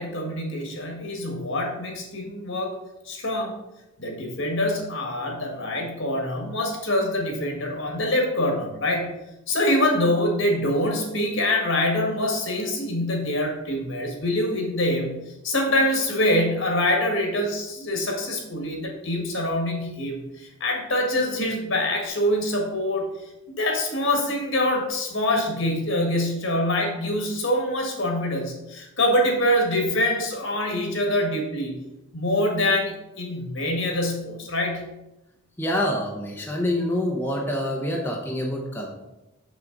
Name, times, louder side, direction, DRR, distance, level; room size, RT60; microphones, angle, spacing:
voice 1, 0.0-2.7 3.0-3.6 4.0-9.2 9.5-23.1 23.5-31.7 32.1-34.9, left 1 dB, 60° left, 1 dB, 1.7 m, -25 dB
voice 2, 35.6-38.9, left 1 dB, 10° left, -1 dB, 0.7 m, -26 dB
6.4 x 6.0 x 3.9 m, 0.94 s
head